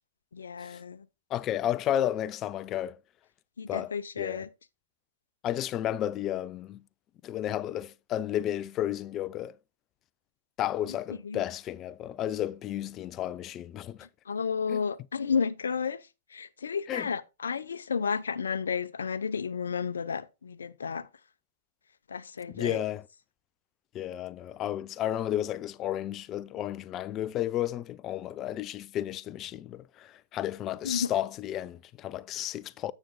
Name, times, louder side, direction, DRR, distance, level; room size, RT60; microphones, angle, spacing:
voice 1, 0.3-1.1 3.6-4.5 11.2-11.4 14.3-21.1 22.1-22.8 30.8-31.1, left 6 dB, 75° left, 0.7 m, -32 dB
voice 2, 1.3-3.0 3.7-3.9 4.2-4.4 5.4-6.8 7.2-9.6 10.6-14.1 14.7-14.8 16.9-17.1 22.5-23.0 23.9-32.9, left 12 dB, 30° left, 0.5 m, -32 dB
9.8 x 8.3 x 2.2 m
hypercardioid pair, 110°, 0 cm